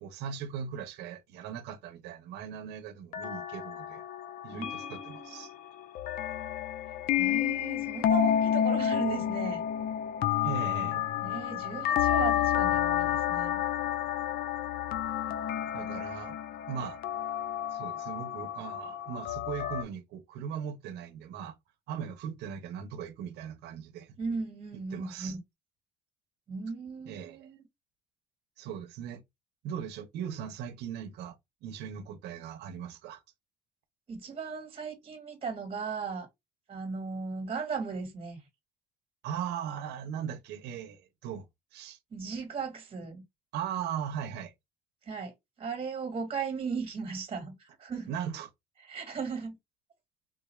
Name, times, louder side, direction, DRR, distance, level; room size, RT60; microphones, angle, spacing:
voice 1, 0.0-4.0 4.4-5.5 10.4-11.0 15.7-16.4 16.7-17.0 17.7-21.6 21.9-24.2 24.9-25.3 27.1-27.5 28.6-29.2 29.6-33.2 39.2-41.5 41.7-42.0 43.5-44.5 48.1-48.5, right 8 dB, 80° right, 0.8 m, -39 dB
sound 1, 3.1-19.8, left 10 dB, 60° left, 0.5 m, -30 dB
voice 2, 4.5-5.5 7.1-9.6 11.2-13.6 24.2-25.4 26.5-27.6 34.1-36.3 36.7-38.4 42.1-43.2 45.0-45.3 45.6-48.1 48.9-49.6, right 5 dB, 35° right, 1.4 m, -36 dB
3.7 x 2.3 x 3.1 m
cardioid pair, 110°, 17 cm